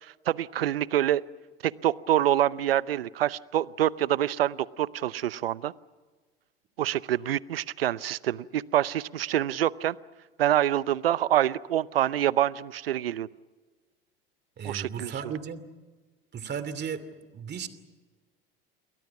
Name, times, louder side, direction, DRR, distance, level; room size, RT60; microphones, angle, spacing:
voice 1, 0.0-1.2 1.6-5.7 6.8-10.0 10.4-13.3 14.6-15.1, right 12 dB, 85° right, 20 dB, 0.7 m, -26 dB
voice 2, 14.6-15.6 16.3-17.7, right 7 dB, 35° right, 13 dB, 2.8 m, -35 dB
29.0 x 23.0 x 6.1 m, 1.3 s
hypercardioid pair, 80°, 29 cm